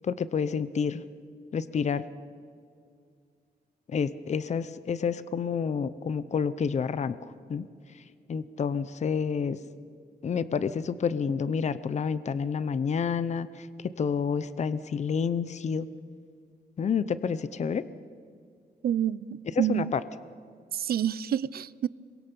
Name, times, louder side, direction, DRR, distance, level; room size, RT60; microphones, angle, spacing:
voice 1, 0.0-1.0 1.5-2.0 3.9-7.7 8.3-9.6 10.2-13.7 14.0-15.9 16.8-17.8 19.7-20.0, left 6 dB, 45° left, 0.7 m, -29 dB
voice 2, 18.8-19.9 20.7-21.9, right 10 dB, 70° right, 0.5 m, -28 dB
27.5 x 23.0 x 5.4 m
wide cardioid pair, 150°, 17 cm